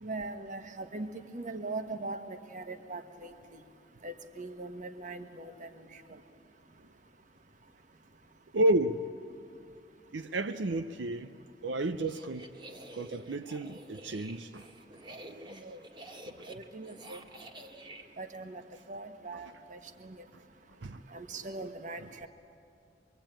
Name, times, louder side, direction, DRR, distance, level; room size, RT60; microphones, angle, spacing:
voice 1, 0.0-3.6 4.0-5.9 15.6-15.8 16.5-17.2 18.2-18.6 18.9-20.2 21.1-22.3, right 2 dB, 45° right, 1.3 m, -41 dB
voice 2, 8.5-9.1 10.1-11.4 11.6-12.5 12.9-14.6 15.1-15.5 16.3-16.4 20.3-20.4 20.8-21.0, right 1 dB, 75° right, 0.6 m, -31 dB
sound 1, 11.9-18.0, right 1 dB, 25° right, 1.6 m, -49 dB
24.0 x 23.5 x 8.9 m
head